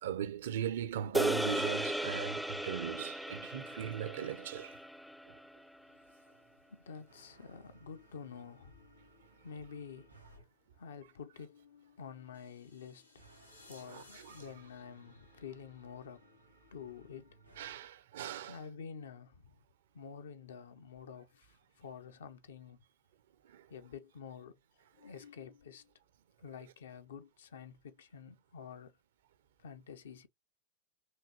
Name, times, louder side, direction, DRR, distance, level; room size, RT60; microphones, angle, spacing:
voice 1, 0.0-4.8 5.3-5.4 13.9-14.4 17.6-18.6 23.4-23.7, right 9 dB, 60° right, 0.6 m, -39 dB
sound 1, 1.1-5.6, right 1 dB, ahead, 0.3 m, -36 dB
voice 2, 5.8-6.3 6.7-10.2 10.7-16.4 16.7-17.4 18.5-19.6 19.9-22.8 23.7-24.6 25.0-25.9 26.4-29.0 29.6-30.3, left 6 dB, 65° left, 0.6 m, -49 dB
sound 2, 7.1-10.5 13.1-17.7, right 2 dB, 85° right, 1.4 m, -62 dB
sound 3, 12.3-16.4, left 3 dB, 85° left, 1.3 m, -62 dB
4.7 x 2.9 x 2.8 m
figure-of-eight pair, 90°, 0 cm